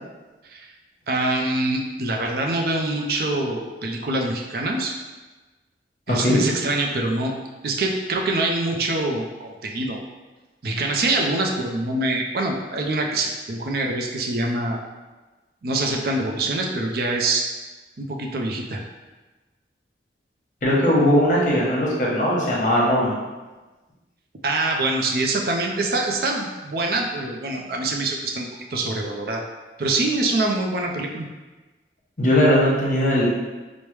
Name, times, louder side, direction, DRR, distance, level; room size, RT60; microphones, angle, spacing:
voice 1, 1.1-4.9 6.1-7.3 7.6-10.0 10.6-14.8 15.6-17.4 18.0-18.8 24.4-29.4 29.8-31.3, right 2 dB, 55° right, 1 dB, 0.4 m, -24 dB
voice 2, 6.1-6.4 20.6-23.1 32.2-33.2, equal, 45° left, -5 dB, 0.9 m, -19 dB
4.6 x 2.1 x 3.1 m, 1.2 s
head